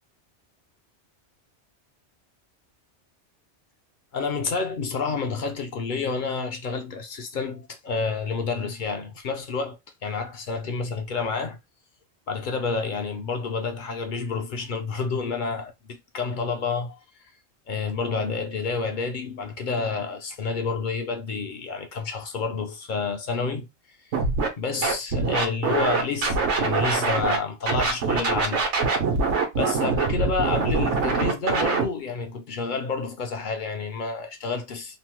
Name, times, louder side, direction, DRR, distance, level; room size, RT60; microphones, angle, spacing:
voice 1, 4.1-11.6 12.3-17.0 17.7-23.7 24.6-28.7 29.0-29.1 29.6-35.0, left 4 dB, 55° left, 0.6 m, -29 dB
Scratching (performance technique), 24.1-24.5 24.8-27.4 27.7-31.8, right 4 dB, 90° right, 1.1 m, -23 dB
3.0 x 2.0 x 2.9 m
omnidirectional pair, 1.2 m